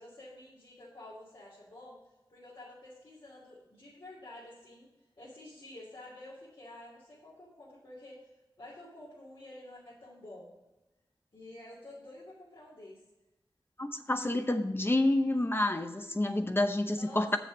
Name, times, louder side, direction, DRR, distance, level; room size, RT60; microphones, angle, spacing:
voice 1, 0.0-2.0 2.3-4.9 5.2-8.3 8.6-10.5 11.3-13.0 16.9-17.4, left 1 dB, 75° left, -9 dB, 2.9 m, -50 dB
voice 2, 13.8-17.4, left 1 dB, 25° left, 7 dB, 0.8 m, -29 dB
7.1 x 7.0 x 6.3 m, 1.0 s
wide cardioid pair, 50°, 9 cm